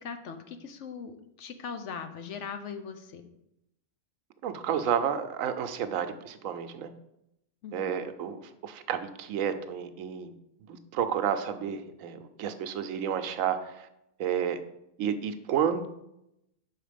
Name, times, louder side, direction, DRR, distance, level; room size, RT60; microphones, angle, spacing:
voice 1, 0.0-3.2 7.6-8.0, left 6 dB, 70° left, 8 dB, 1.0 m, -40 dB
voice 2, 4.4-6.9 7.7-10.3 10.9-13.9 14.2-14.6 15.0-15.9, right 8 dB, 85° right, 10 dB, 1.0 m, -31 dB
5.8 x 4.7 x 5.0 m, 0.83 s
omnidirectional pair, 1.3 m